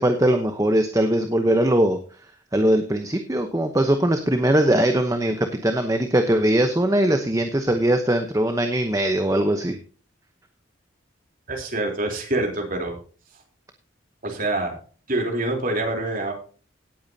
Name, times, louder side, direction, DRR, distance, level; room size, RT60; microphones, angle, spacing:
voice 1, 0.0-2.0 2.5-9.8, right 1 dB, 15° right, 6 dB, 0.9 m, -21 dB
voice 2, 11.5-13.0 14.2-14.7 15.1-16.3, right 2 dB, 45° right, 1 dB, 3.5 m, -25 dB
17.5 x 8.5 x 2.8 m, 0.39 s
head